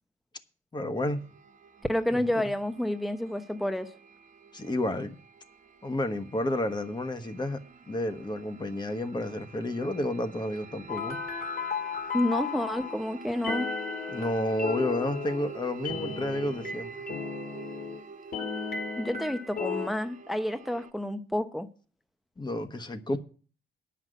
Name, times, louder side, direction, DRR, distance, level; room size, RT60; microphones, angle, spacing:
voice 1, 0.7-1.2 2.1-2.5 4.5-5.2 5.8-7.6 7.9-11.2 14.1-17.1 22.4-23.2, left 1 dB, 20° left, 1.3 m, -31 dB
sound 1, 1.0-20.9, right 5 dB, 40° right, 1.2 m, -47 dB
voice 2, 1.9-3.9 12.1-13.7 19.0-21.7, left 1 dB, ahead, 0.7 m, -29 dB
sound 2, 10.9-13.0 13.4-18.0 18.3-19.9, left 5 dB, 50° left, 2.1 m, -34 dB
9.7 x 5.9 x 8.0 m
cardioid pair, 90°, 20 cm